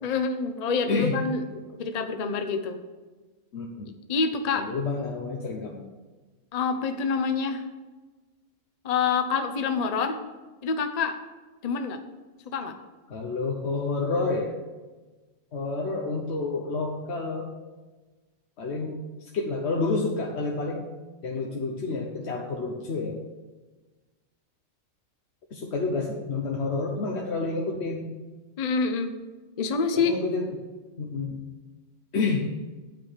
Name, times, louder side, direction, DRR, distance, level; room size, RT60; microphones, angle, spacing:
voice 1, 0.0-1.4 1.8-2.8 4.1-4.7 6.5-7.6 8.8-10.2 10.6-11.2 11.6-12.0 12.5-12.7 28.6-29.1 29.6-30.2, left 5 dB, 40° left, 7 dB, 0.6 m, -26 dB
voice 2, 3.5-3.9 4.5-5.8 13.1-14.5 15.5-17.5 18.6-20.8 21.2-23.2 25.5-28.1 29.9-30.5 31.0-31.4 32.1-32.5, left 3 dB, 55° left, 0 dB, 1.1 m, -29 dB
9.3 x 5.0 x 7.4 m, 1.2 s
omnidirectional pair, 1.4 m